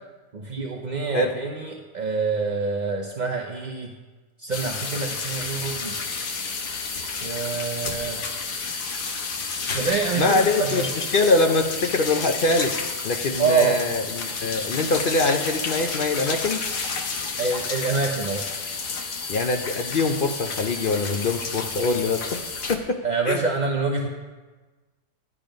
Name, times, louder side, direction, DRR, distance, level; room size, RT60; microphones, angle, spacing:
voice 1, 0.3-4.0 4.4-6.0 7.2-8.3 9.7-10.9 13.4-13.8 17.4-18.5 23.0-24.1, right 4 dB, 40° right, 1 dB, 0.6 m, -26 dB
sound 1, 4.5-22.8, left 4 dB, 80° left, 1.6 m, -31 dB
voice 2, 10.2-12.7 13.0-16.6 19.3-22.4 22.7-23.4, left 3 dB, 60° left, 4 dB, 0.5 m, -23 dB
11.0 x 11.0 x 5.2 m, 1.3 s
omnidirectional pair, 1.7 m